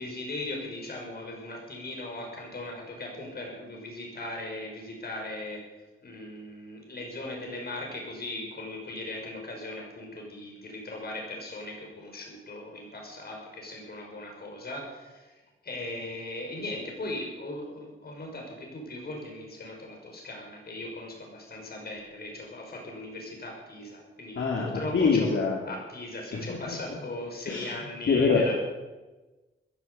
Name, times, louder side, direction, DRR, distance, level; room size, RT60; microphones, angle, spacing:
voice 1, 0.0-5.6 6.0-25.3 25.6-28.6, left 2 dB, 50° left, 0 dB, 6.1 m, -38 dB
voice 2, 24.3-25.6 26.3-26.8 27.5-28.6, left 4 dB, 70° left, -4 dB, 3.2 m, -25 dB
15.5 x 10.5 x 8.5 m, 1.2 s
wide cardioid pair, 125°, 21 cm